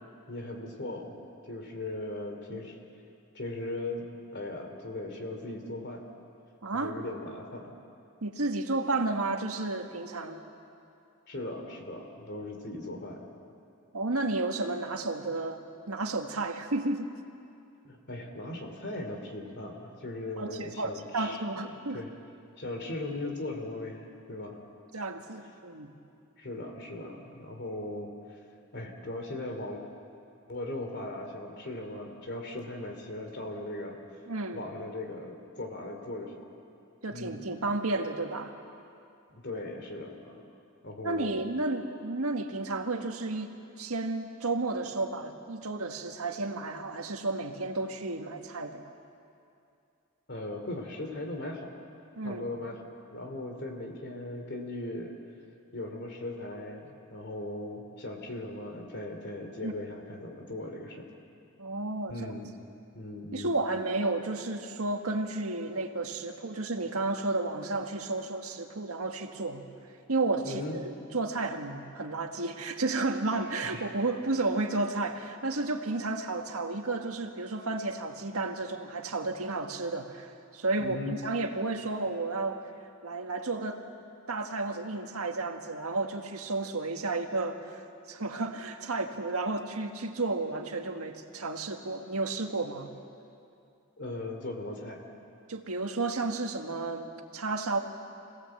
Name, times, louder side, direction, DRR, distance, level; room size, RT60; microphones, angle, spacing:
voice 1, 0.3-1.2 1.4-2.8 3.3-4.1 4.3-6.0 6.7-7.7 11.3-13.2 17.8-21.4 21.9-22.1 22.6-24.6 26.4-28.4 28.7-29.8 30.5-34.0 34.5-36.3 37.1-37.5 39.3-40.4 40.8-41.4 50.3-51.7 52.2-52.8 53.1-55.1 55.7-61.0 62.1-62.5 62.9-63.6 70.4-70.8 73.6-73.8 80.8-81.2 94.0-95.0, left 2 dB, 55° left, 4 dB, 2.8 m, -38 dB
voice 2, 6.6-7.0 8.2-10.4 13.9-15.6 15.9-17.1 20.4-22.0 24.9-25.9 34.3-34.7 37.0-38.5 41.0-43.5 43.8-48.8 52.1-52.4 59.6-59.7 61.6-62.3 63.3-69.6 70.1-82.6 83.0-83.8 84.3-92.9 95.5-97.8, right 2 dB, 90° right, 4 dB, 1.7 m, -32 dB
26.0 x 18.0 x 7.7 m, 2.6 s
head